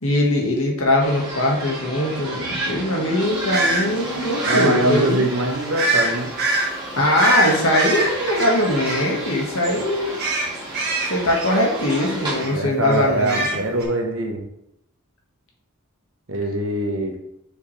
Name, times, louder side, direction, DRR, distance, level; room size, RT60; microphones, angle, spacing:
voice 1, 0.0-5.3 7.0-10.1 11.0-13.6, left 1 dB, 70° left, -1 dB, 1.8 m, -21 dB
newjersey OC ferriswheelground, 1.0-12.4, right 1 dB, 20° right, 1.8 m, -31 dB
sound 1, 3.5-3.8 4.4-4.7 5.8-6.1 6.4-6.7 7.2-9.4 9.6-9.8 10.2-12.0 12.4-12.5 12.9-13.8, right 2 dB, 45° right, 1.6 m, -23 dB
voice 2, 4.4-6.3 12.4-14.4 16.3-17.1, right 1 dB, 65° right, 2 dB, 1.2 m, -23 dB
6.5 x 5.3 x 3.4 m, 0.80 s
head